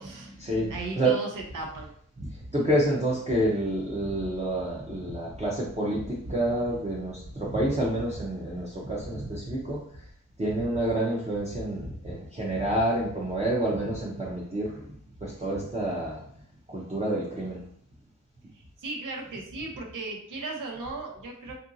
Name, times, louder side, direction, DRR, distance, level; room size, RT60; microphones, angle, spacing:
voice 1, 0.0-1.9 18.5-21.5, right 3 dB, 80° right, 1 dB, 0.7 m, -37 dB
voice 2, 2.5-9.8 10.4-14.7 15.2-16.2 16.7-17.6, right 1 dB, 20° right, -6 dB, 0.6 m, -28 dB
2.8 x 2.5 x 2.6 m, 0.62 s
wide cardioid pair, 110°, 31 cm